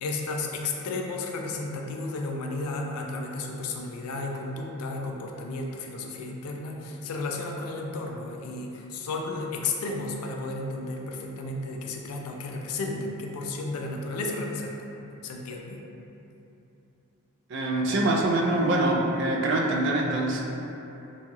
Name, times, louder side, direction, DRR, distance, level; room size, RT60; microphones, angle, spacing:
voice 1, 0.0-14.8 15.2-15.8, left 3 dB, 85° left, 1 dB, 0.4 m, -33 dB
voice 2, 17.5-20.4, right 2 dB, 55° right, -1 dB, 0.3 m, -24 dB
2.7 x 2.3 x 2.9 m, 2.9 s
head